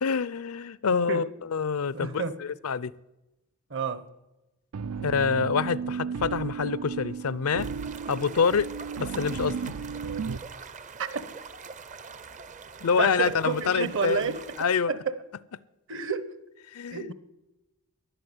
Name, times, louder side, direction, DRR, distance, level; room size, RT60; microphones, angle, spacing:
voice 1, 0.0-2.9 5.0-7.7 8.1-8.7 9.0-9.6 12.8-14.2 14.6-14.9 16.7-17.1, left 5 dB, 75° left, 0.5 m, -26 dB
voice 2, 1.9-2.4 3.7-4.0 11.0-11.2 13.0-14.4 14.9-15.0 15.9-16.3 16.9-17.1, right 5 dB, 55° right, 1.2 m, -30 dB
sound 1, 4.7-10.4, right 6 dB, 80° right, 0.5 m, -34 dB
sound 2, 7.6-14.7, right 5 dB, 35° right, 0.6 m, -44 dB
12.5 x 11.0 x 9.8 m
head